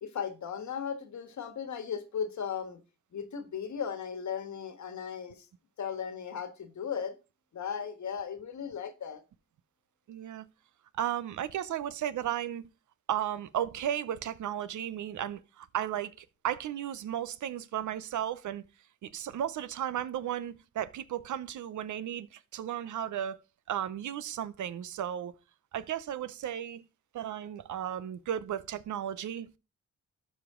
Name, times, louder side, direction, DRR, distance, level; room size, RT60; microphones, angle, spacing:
voice 1, 0.0-2.8 3.1-5.5 5.8-7.1 7.5-9.2, left 7 dB, 75° left, 1.5 m, -36 dB
voice 2, 10.1-10.5 11.0-12.7 13.1-18.6 19.0-25.4 25.7-26.8 27.1-29.5, right 10 dB, 90° right, 0.7 m, -34 dB
12.5 x 5.1 x 3.7 m
cardioid pair, 70°, 29 cm